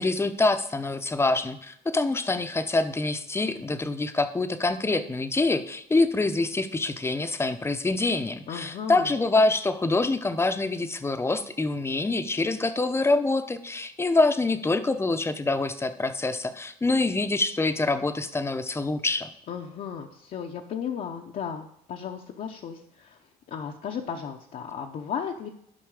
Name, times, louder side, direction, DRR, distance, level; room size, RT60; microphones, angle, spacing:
voice 1, 0.0-19.3, left 3 dB, 15° left, 10 dB, 0.7 m, -25 dB
voice 2, 8.5-9.1 19.5-23.2 23.5-25.5, left 7 dB, 55° left, 1 dB, 0.8 m, -35 dB
11.5 x 5.5 x 4.8 m, 0.72 s
cardioid pair, 110°, 17 cm